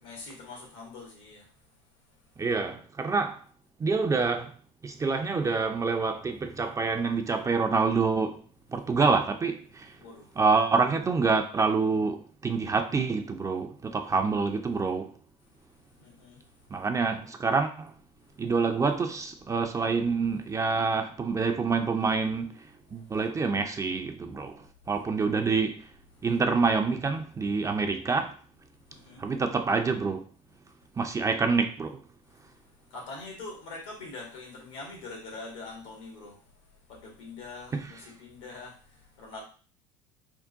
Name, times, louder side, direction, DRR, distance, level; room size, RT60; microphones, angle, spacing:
voice 1, 0.0-1.5 10.0-10.4 16.0-16.4 22.9-23.2 26.2-26.3 28.9-29.3 32.9-36.5 36.9-39.4, left 3 dB, 80° left, 1.5 m, -44 dB
voice 2, 2.4-3.4 3.8-4.5 4.8-8.4 8.7-9.9 10.4-15.1 16.7-17.9 18.4-22.5 22.9-24.6 24.9-25.8 26.2-28.3 29.2-30.2 31.0-32.0 37.7-37.9, right 4 dB, 20° right, 0.4 m, -27 dB
3.5 x 2.1 x 3.8 m
supercardioid pair, 85°, 15 cm